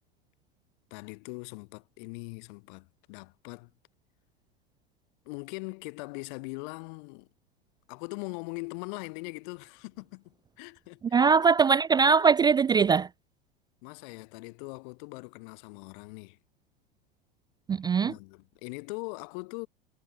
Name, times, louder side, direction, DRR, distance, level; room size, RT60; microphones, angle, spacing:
voice 1, 0.9-3.7 5.2-7.3 7.9-11.2 13.8-16.4 18.0-19.7, left 30 dB, 55° left, 7.9 m, -41 dB
voice 2, 11.1-13.1 17.7-18.1, right 5 dB, 15° right, 0.4 m, -21 dB
hypercardioid pair, 95°, 29 cm